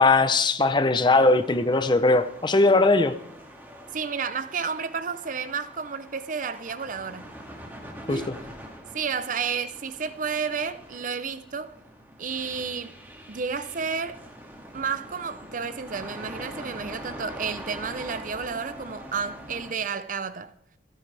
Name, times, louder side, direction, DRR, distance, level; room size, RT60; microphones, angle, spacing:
voice 1, 0.0-3.2 8.1-8.4, left 3 dB, 25° left, 0.7 m, -20 dB
sound 1, 1.0-19.7, equal, 10° right, 2.2 m, -44 dB
voice 2, 3.9-7.2 8.1-8.3 8.9-11.8 12.2-13.0 13.3-14.2 14.7-20.5, right 5 dB, 45° right, 0.7 m, -31 dB
27.0 x 9.3 x 3.4 m
head